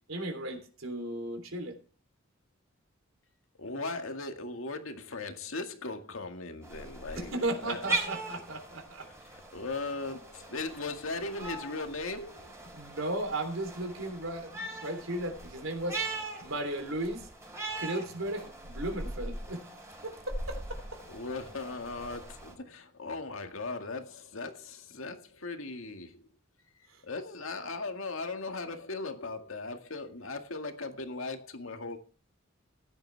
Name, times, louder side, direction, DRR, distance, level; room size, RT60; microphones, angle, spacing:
voice 1, 0.1-1.8 6.8-9.1 12.7-16.0 16.4-17.3 17.8-19.6 20.0-20.8, right 1 dB, 80° right, 3.3 m, -35 dB
voice 2, 3.6-8.0 9.2-12.8 21.1-26.2 26.8-32.0, left 3 dB, 80° left, 2.0 m, -38 dB
sound 1, 6.6-22.5, right 2 dB, 15° right, 3.9 m, -40 dB
15.5 x 10.5 x 3.4 m
head